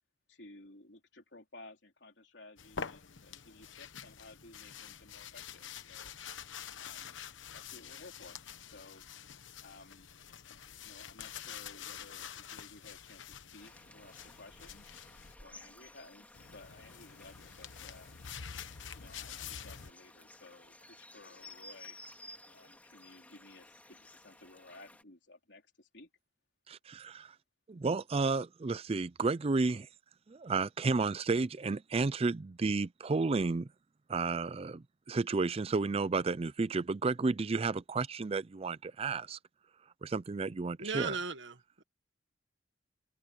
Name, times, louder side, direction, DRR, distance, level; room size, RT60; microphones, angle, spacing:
voice 1, 0.3-6.1 6.8-7.1 7.5-8.4 8.7-9.0 9.6-10.1 10.8-14.9 15.4-18.2 18.9-22.0 22.5-26.1, left 2 dB, 65° left, 3.8 m, -56 dB
sound 1, 2.6-15.3 16.3-19.9, left 7 dB, 85° left, 1.1 m, -47 dB
sound 2, 13.6-25.0, left 2 dB, 10° left, 2.6 m, -55 dB
voice 2, 26.7-27.3 27.7-29.9 30.3-33.7 34.1-39.4 40.0-41.2, right 3 dB, 30° right, 0.4 m, -32 dB
voice 3, 40.8-41.8, right 4 dB, 70° right, 1.4 m, -37 dB
head